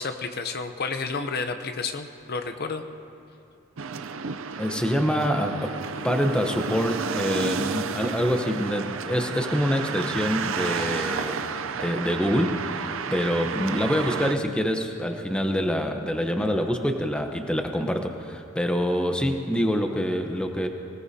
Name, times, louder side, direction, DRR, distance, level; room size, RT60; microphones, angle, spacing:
voice 1, 0.0-2.8, left 4 dB, 50° left, 7 dB, 0.7 m, -31 dB
sound 1, 3.8-14.3, right 5 dB, 70° right, 0.6 m, -31 dB
voice 2, 4.6-5.8 6.0-11.5 11.8-20.7, equal, 5° left, 4 dB, 0.9 m, -26 dB
24.5 x 17.5 x 2.8 m, 2.6 s
head